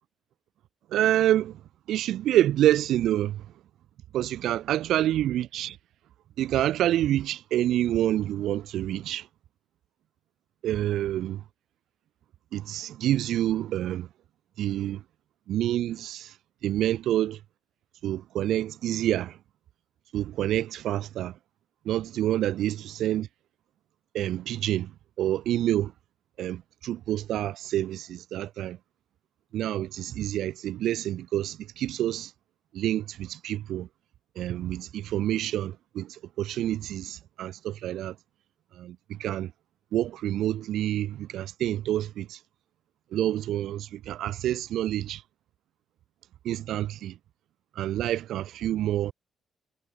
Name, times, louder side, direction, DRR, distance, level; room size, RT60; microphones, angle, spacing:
voice 1, 0.9-3.5 4.1-5.8 6.4-9.3 10.6-11.4 12.5-14.1 14.6-15.0 15.5-16.4 16.6-17.4 18.0-19.4 20.1-21.4 21.8-23.3 24.1-25.9 26.4-28.8 29.5-32.3 32.7-33.9 34.3-38.2 38.7-39.5 39.9-42.4 43.1-45.2 46.4-47.2 47.7-49.1, right 12 dB, 80° right, 2.6 m, -27 dB
cardioid pair, 90°, 0 cm